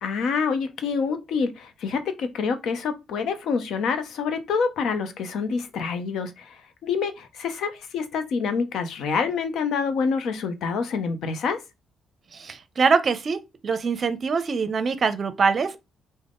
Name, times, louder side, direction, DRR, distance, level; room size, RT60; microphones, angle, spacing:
voice 1, 0.0-11.6, left 5 dB, 75° left, 0.6 m, -27 dB
voice 2, 12.3-15.8, right 5 dB, 45° right, 0.5 m, -24 dB
3.5 x 2.1 x 3.7 m
cardioid pair, 90°, 0 cm